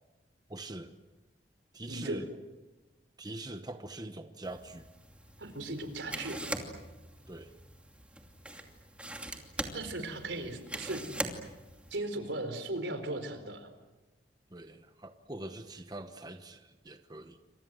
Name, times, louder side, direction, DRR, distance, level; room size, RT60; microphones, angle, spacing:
voice 1, 0.5-1.0 1.7-2.3 3.2-4.9 7.3-7.5 14.5-17.4, right 2 dB, 20° right, 8 dB, 1.1 m, -43 dB
voice 2, 1.9-2.2 5.4-6.4 9.7-11.0 11.9-13.7, right 2 dB, 90° right, 9 dB, 4.4 m, -37 dB
sound 1, 4.4-12.0, right 1 dB, 5° right, 2.7 m, -42 dB
29.0 x 26.0 x 7.7 m, 1.1 s
head